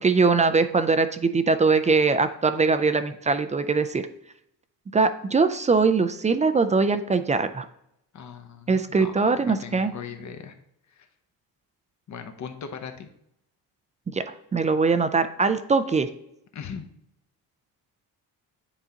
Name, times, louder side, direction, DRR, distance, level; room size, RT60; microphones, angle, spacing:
voice 1, 0.0-4.0 4.9-7.7 8.7-9.9 14.1-16.1, right 4 dB, 20° right, 10 dB, 0.3 m, -22 dB
voice 2, 8.1-10.5 12.1-13.1 16.5-16.9, left 6 dB, 45° left, 7 dB, 0.8 m, -39 dB
9.8 x 3.9 x 2.8 m, 0.77 s
cardioid pair, 110°, 40 cm